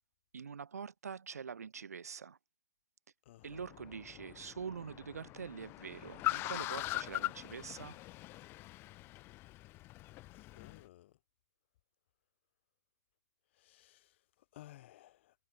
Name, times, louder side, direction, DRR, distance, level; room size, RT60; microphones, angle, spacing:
voice 1, 0.3-2.4 3.4-8.0, right 6 dB, 80° right, 2.2 m, -45 dB
voice 2, 3.2-3.6 10.3-11.2 13.5-15.4, left 15 dB, 45° left, 7.9 m, -58 dB
Car, 3.4-10.8, left 18 dB, 25° left, 2.3 m, -42 dB
hypercardioid pair, 135°, 8 cm